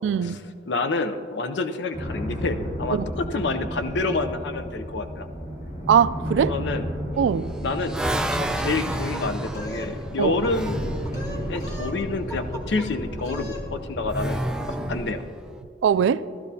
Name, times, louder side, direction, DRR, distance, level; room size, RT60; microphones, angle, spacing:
voice 1, 0.0-0.4 2.9-3.1 5.9-6.5 7.2-7.5 10.2-10.3 15.8-16.2, right 8 dB, 85° right, 0.3 m, -21 dB
voice 2, 0.7-5.3 6.3-6.9 7.6-10.9 11.3-14.4 14.7-15.2, left 3 dB, 70° left, 0.5 m, -28 dB
sound 1, 1.9-15.0, equal, 50° left, 2.9 m, -32 dB
sound 2, 7.1-11.0 14.0-15.5, right 1 dB, 5° right, 0.4 m, -31 dB
sound 3, 8.6-9.9 10.2-10.7 11.0-12.0 12.3-12.9 13.2-13.6, right 1 dB, 20° left, 1.4 m, -38 dB
14.5 x 13.0 x 2.7 m
head